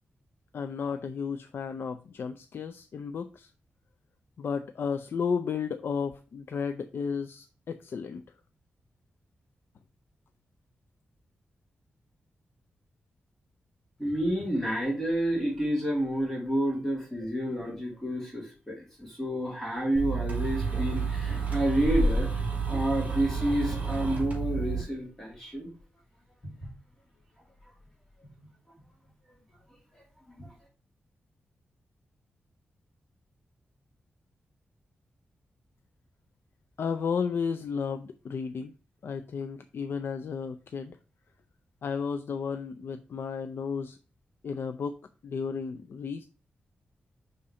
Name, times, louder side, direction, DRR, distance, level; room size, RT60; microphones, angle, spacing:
voice 1, 0.5-3.5 4.4-8.2 36.8-38.7 39.0-41.0 41.8-44.0 44.4-46.3, left 6 dB, 70° left, 8 dB, 0.4 m, -33 dB
voice 2, 14.0-22.4 22.7-25.7 30.3-30.5, right 1 dB, 10° left, -3 dB, 2.7 m, -29 dB
sound 1, 19.9-24.8, right 4 dB, 35° right, 3.8 m, -29 dB
5.7 x 3.8 x 4.8 m, 0.36 s
wide cardioid pair, 100°, 4 cm